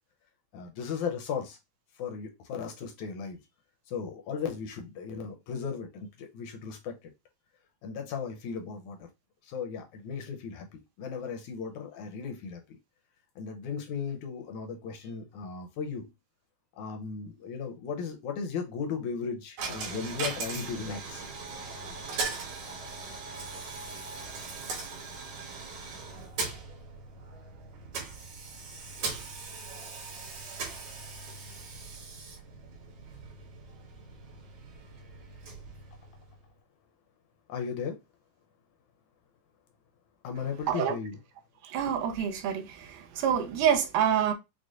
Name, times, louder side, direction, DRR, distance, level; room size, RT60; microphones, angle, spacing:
voice 1, 0.5-1.6 2.0-3.4 3.9-7.0 7.8-9.1 9.4-12.6 13.4-16.1 16.8-21.3 37.5-38.0 40.2-41.2, left 6 dB, 80° left, 1.9 m, -36 dB
Coin (dropping), 19.6-36.5, right 4 dB, 70° right, 2.5 m, -39 dB
voice 2, 41.6-44.3, right 8 dB, 85° right, 2.2 m, -27 dB
6.2 x 2.2 x 2.4 m
omnidirectional pair, 3.6 m